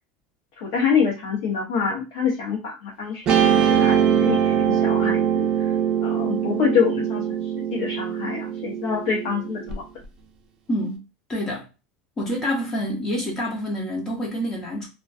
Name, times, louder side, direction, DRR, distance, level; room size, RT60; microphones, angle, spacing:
voice 1, 0.6-5.5 6.0-9.8, left 6 dB, 65° left, 0.7 m, -26 dB
Guitar, 3.3-9.7, right 9 dB, 30° right, 0.5 m, -22 dB
voice 2, 10.7-11.0 11.3-11.7 12.2-14.9, equal, 20° left, 0.5 m, -27 dB
2.4 x 2.2 x 2.4 m
supercardioid pair, 155°, 3 cm